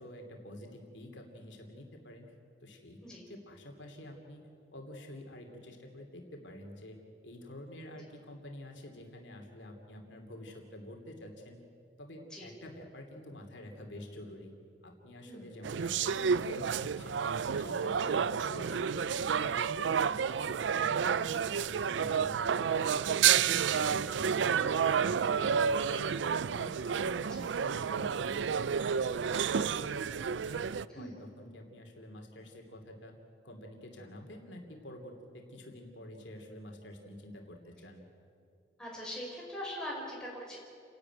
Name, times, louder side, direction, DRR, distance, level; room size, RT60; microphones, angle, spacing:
voice 1, 0.0-2.3 2.6-3.0 3.3-4.4 4.7-7.0 7.2-11.6 12.0-14.5 14.8-17.2 17.5-23.2 23.5-26.1 26.5-29.3 29.5-33.1 33.4-38.0, left 1 dB, 90° left, 3 dB, 2.8 m, -48 dB
sound 1, 15.6-30.9, right 7 dB, 85° right, 0.4 m, -30 dB
voice 2, 38.8-40.6, left 1 dB, 5° left, -4 dB, 5.8 m, -42 dB
29.5 x 12.0 x 9.3 m, 2.4 s
head